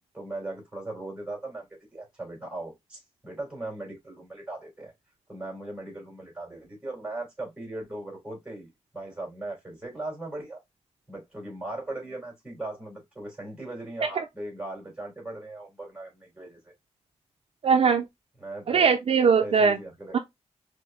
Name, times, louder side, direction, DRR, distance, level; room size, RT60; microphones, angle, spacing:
voice 1, 0.1-1.6 1.9-4.9 5.3-8.7 8.9-10.6 11.1-16.7 18.4-18.9 19.4-20.2, right 2 dB, 10° right, 2.9 m, -38 dB
voice 2, 17.6-18.0 18.7-19.8 20.1-20.2, right 6 dB, 55° right, 0.5 m, -20 dB
4.5 x 3.5 x 2.4 m
wide cardioid pair, 170°, 11 cm